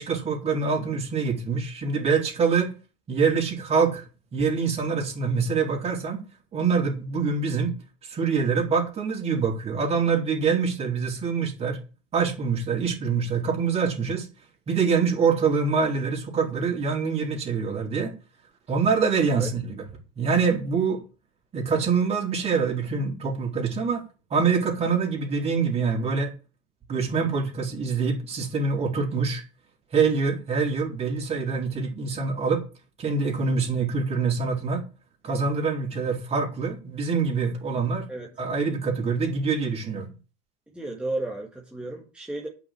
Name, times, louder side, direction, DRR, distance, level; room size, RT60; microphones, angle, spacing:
voice 1, 0.0-2.7 3.1-4.0 4.3-6.2 6.5-7.7 8.0-11.8 12.1-14.3 14.7-18.1 18.7-19.8 20.2-21.0 21.5-24.0 24.3-26.3 26.9-29.4 29.9-32.6 33.0-34.9 35.2-38.1 38.4-40.1, right 5 dB, 35° right, 4.1 m, -25 dB
voice 2, 40.7-42.5, right 2 dB, 5° right, 2.1 m, -33 dB
8.8 x 6.1 x 7.7 m
supercardioid pair, 105°, 19 cm